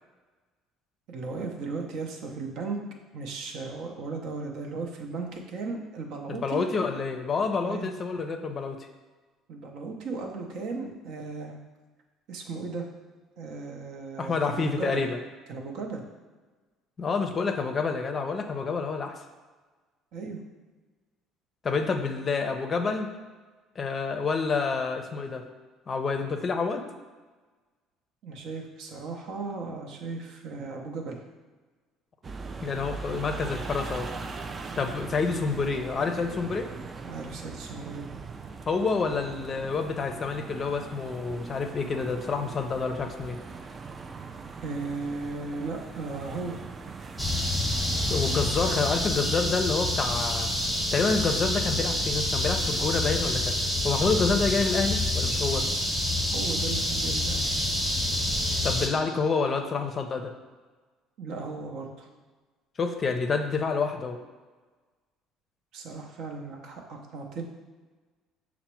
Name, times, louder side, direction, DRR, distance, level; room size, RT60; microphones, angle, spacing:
voice 1, 1.1-2.8 3.1-6.6 7.6-7.9 9.5-11.6 12.3-12.9 13.4-15.1 15.5-16.0 20.1-20.4 28.2-31.2 37.0-38.1 44.6-46.6 56.3-57.6 61.2-62.1 65.7-67.4, right 4 dB, 65° right, 2 dB, 0.7 m, -36 dB
voice 2, 6.3-8.9 14.2-15.2 17.0-19.1 21.6-23.1 23.8-25.4 25.9-26.8 32.6-34.1 34.8-36.7 38.7-43.4 48.1-50.5 50.9-55.7 58.6-60.3 62.8-64.2, left 4 dB, 35° left, 6 dB, 0.5 m, -28 dB
sound 1, 32.2-49.0, right 4 dB, 35° right, 0.3 m, -40 dB
sound 2, 47.2-58.9, left 1 dB, 10° right, 0.9 m, -27 dB
5.8 x 2.1 x 4.3 m, 1.3 s
supercardioid pair, 80°, 0 cm